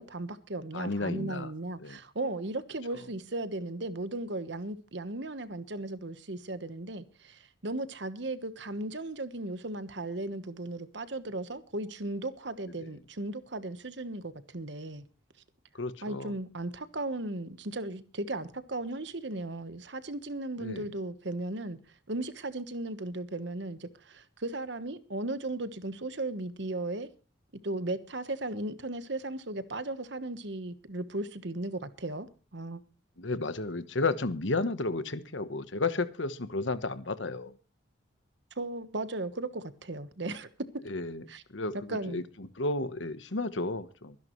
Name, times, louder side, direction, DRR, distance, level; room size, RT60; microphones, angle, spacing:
voice 1, 0.0-15.0 16.0-21.8 22.1-27.1 27.6-32.3 32.5-32.8 38.6-40.5 41.3-41.4 41.9-42.2, right 2 dB, 60° right, 1.2 m, -36 dB
voice 2, 0.7-1.5 1.8-2.0 15.7-16.3 20.6-20.9 33.2-37.6 40.8-41.3 41.5-44.2, left 3 dB, 70° left, 1.1 m, -32 dB
23.5 x 11.0 x 3.2 m
head